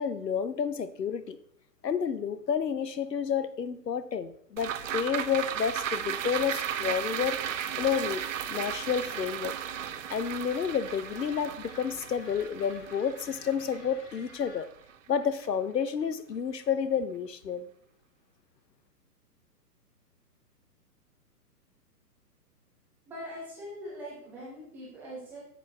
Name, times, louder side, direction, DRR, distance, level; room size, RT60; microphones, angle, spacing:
voice 1, 0.0-1.4 1.8-8.2 8.5-9.5 10.1-14.7 15.1-17.7, left 7 dB, 85° left, 0.7 m, -30 dB
sound 1, 4.6-15.1 15.4-15.5, right 9 dB, 50° right, 0.6 m, -35 dB
sound 2, 6.2-14.6, left 4 dB, 30° left, 1.2 m, -52 dB
voice 2, 23.1-25.4, equal, 5° right, 0.4 m, -42 dB
7.8 x 6.7 x 3.2 m
figure-of-eight pair, 125°, 48 cm